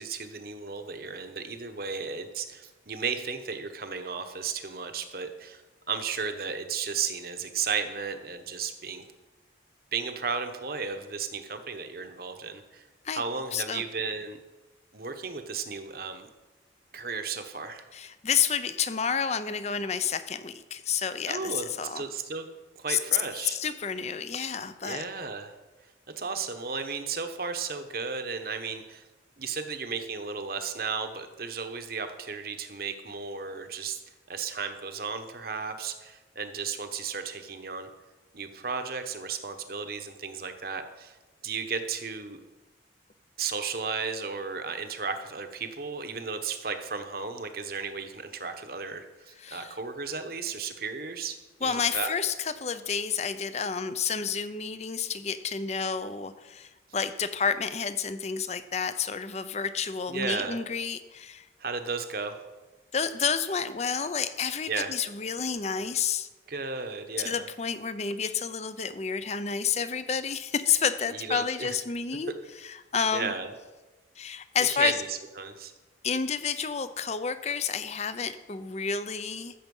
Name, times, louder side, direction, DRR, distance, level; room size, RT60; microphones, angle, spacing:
voice 1, 0.0-5.6 5.9-9.0 9.9-12.8 13.1-14.4 14.9-16.3 16.9-17.9 21.3-22.5 22.8-23.6 24.8-25.5 26.2-29.1 29.4-34.0 34.3-37.9 38.3-41.2 41.4-42.4 43.4-51.3 51.6-52.1 60.1-60.6 61.6-62.4 64.7-64.9 66.5-67.5 71.1-71.8 73.1-73.5 74.6-75.7, right 5 dB, 50° right, 7 dB, 1.0 m, -34 dB
voice 2, 13.5-13.8 17.9-22.0 22.9-23.0 23.4-25.0 49.4-49.7 51.6-61.5 62.9-66.3 67.2-72.3 72.6-73.3 74.2-74.9 76.0-79.5, left 6 dB, 35° left, 12 dB, 0.6 m, -30 dB
14.0 x 7.3 x 5.4 m, 1.2 s
head